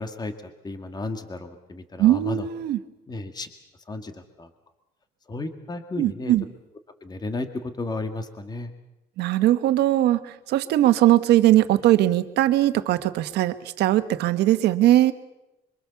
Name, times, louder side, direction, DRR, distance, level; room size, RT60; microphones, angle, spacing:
voice 1, 0.0-2.5 3.1-3.5 3.9-4.5 5.3-6.3 7.0-8.7, left 2 dB, 25° left, 7 dB, 2.0 m, -33 dB
voice 2, 2.0-2.8 6.0-6.4 9.2-15.1, right 14 dB, 80° right, 10 dB, 1.3 m, -20 dB
25.0 x 24.0 x 7.1 m, 0.96 s
cardioid pair, 110°, 17 cm